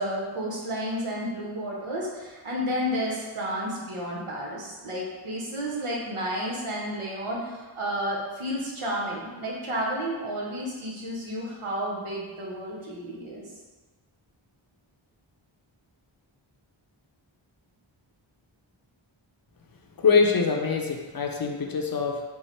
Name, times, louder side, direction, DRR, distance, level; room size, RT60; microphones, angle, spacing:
voice 1, 0.0-13.5, equal, 90° right, -3 dB, 0.9 m, -31 dB
voice 2, 20.0-22.2, left 5 dB, 45° left, 2 dB, 0.6 m, -24 dB
4.5 x 2.0 x 4.4 m, 1.3 s
cardioid pair, 40°, 49 cm